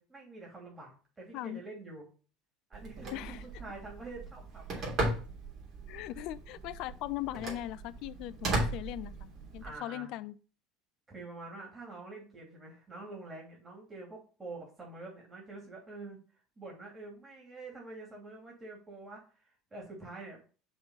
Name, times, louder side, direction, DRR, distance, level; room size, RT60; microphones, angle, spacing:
voice 1, 0.0-2.1 2.7-4.9 9.6-10.1 11.1-16.2 16.6-20.4, right 3 dB, 20° right, 2.9 m, -46 dB
Telephone, 2.7-9.7, right 2 dB, 45° right, 3.0 m, -37 dB
voice 2, 3.1-3.4 5.9-10.4, left 15 dB, 55° left, 0.4 m, -39 dB
5.5 x 4.2 x 5.6 m
figure-of-eight pair, 65°, 0 cm